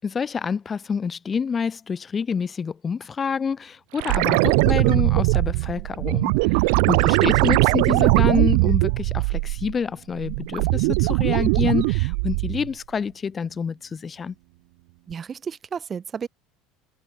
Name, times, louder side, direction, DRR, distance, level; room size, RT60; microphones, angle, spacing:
voice 1, 0.0-14.3, left 6 dB, 20° left, 6.7 m, -28 dB
sound 1, 4.0-9.8 10.2-12.7 15.1-15.2, right 33 dB, 75° right, 2.1 m, -20 dB
voice 2, 6.7-7.1 15.1-16.3, right 7 dB, 25° right, 6.9 m, -33 dB
cardioid pair, 145°, 0 cm